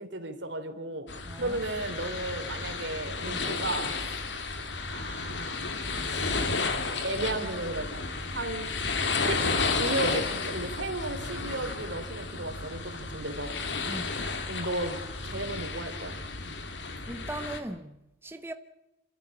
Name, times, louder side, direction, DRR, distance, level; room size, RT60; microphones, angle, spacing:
voice 1, 0.0-1.1 1.4-3.9 4.9-5.7 6.1-6.6 7.0-8.1 8.3-8.7 9.3-9.4 9.8-13.6 14.5-15.0 15.2-16.1, right 2 dB, 80° right, 3.1 m, -34 dB
sound 1, 1.1-17.6, left 4 dB, 70° left, 2.3 m, -32 dB
voice 2, 1.3-1.6 3.3-3.4 13.9-14.2 17.1-18.5, right 1 dB, 10° right, 0.9 m, -39 dB
27.5 x 13.0 x 8.7 m
head